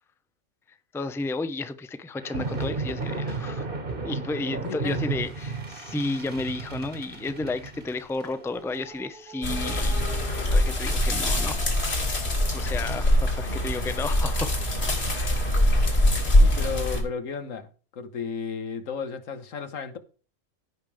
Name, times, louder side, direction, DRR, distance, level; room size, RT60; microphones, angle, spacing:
voice 1, 0.9-3.7 4.0-10.2 10.5-11.6 12.5-14.6 16.1-16.2, left 3 dB, 5° left, 0.4 m, -32 dB
sound 1, 2.2-12.7, right 3 dB, 45° right, 2.0 m, -35 dB
voice 2, 4.6-5.0 16.4-20.0, left 5 dB, 90° left, 1.6 m, -33 dB
sound 2, 9.4-17.0, left 1 dB, 55° left, 2.6 m, -23 dB
15.5 x 5.3 x 3.4 m
omnidirectional pair, 1.3 m